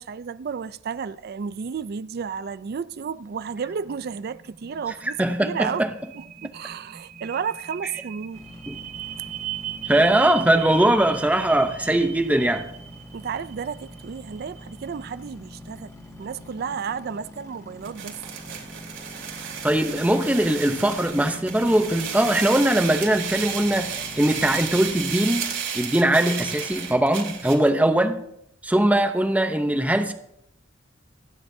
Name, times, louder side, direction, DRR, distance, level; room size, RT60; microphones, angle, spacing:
voice 1, 0.0-5.9 6.1-8.4 9.1-9.3 9.9-10.0 13.1-15.9 16.2-18.2, right 6 dB, 55° right, 0.4 m, -32 dB
sound 1, 3.0-20.7, right 10 dB, 40° right, 1.2 m, -40 dB
voice 2, 5.2-5.9 8.7-8.8 9.8-12.7 19.6-28.2 28.6-30.1, right 1 dB, 10° right, 0.7 m, -21 dB
sound 2, 8.3-25.1, equal, 15° left, 1.9 m, -44 dB
sound 3, 17.8-27.7, right 7 dB, 70° right, 3.0 m, -33 dB
27.0 x 9.6 x 2.7 m
head